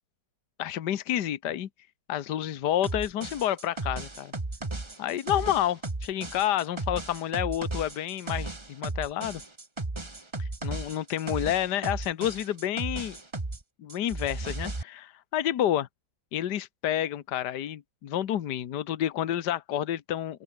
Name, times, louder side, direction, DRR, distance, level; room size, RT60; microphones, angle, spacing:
voice 1, 0.6-1.7 2.1-4.3 5.0-9.4 10.4-13.2 13.8-15.9 16.3-20.4, left 11 dB, 65° left, 1.6 m, -29 dB
sound 1, 2.8-13.6 13.9-14.8, right 2 dB, 15° right, 1.5 m, -35 dB
open air
omnidirectional pair, 2.0 m